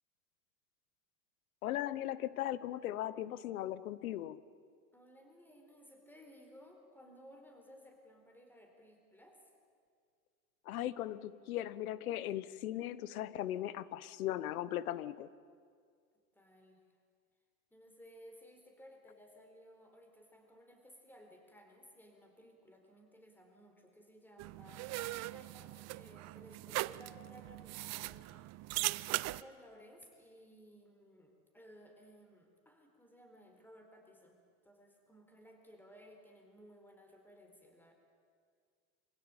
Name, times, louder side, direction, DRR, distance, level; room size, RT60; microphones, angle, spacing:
voice 1, 1.6-4.4 10.7-15.3, left 13 dB, 85° left, 18 dB, 1.0 m, -38 dB
voice 2, 4.9-9.5 16.3-16.8 17.7-28.8 29.1-34.4 34.6-37.9, equal, 5° left, 3 dB, 4.2 m, -58 dB
sound 1, 24.4-29.4, right 20 dB, 40° right, 0.5 m, -40 dB
24.5 x 16.5 x 8.9 m, 2.1 s
hypercardioid pair, 100°, 42 cm